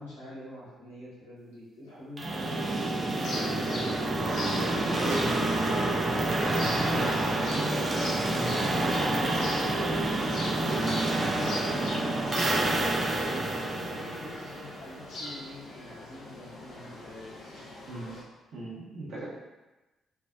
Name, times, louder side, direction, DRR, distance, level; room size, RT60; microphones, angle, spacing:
voice 1, 0.0-4.4 4.9-7.7 8.2-10.8 11.1-12.7 13.2-18.0, left 1 dB, 90° left, -10 dB, 0.9 m, -45 dB
sound 1, 2.2-15.0, right 2 dB, 40° right, 0.4 m, -28 dB
sound 2, 3.2-18.2, left 1 dB, 60° left, 0.5 m, -41 dB
voice 2, 4.8-5.2 6.7-7.7 8.2-8.5 10.7-11.0 17.8-18.2 18.5-19.2, right 2 dB, 60° right, -7 dB, 0.8 m, -37 dB
2.6 x 2.0 x 2.4 m, 1.1 s
hypercardioid pair, 40°, 0 cm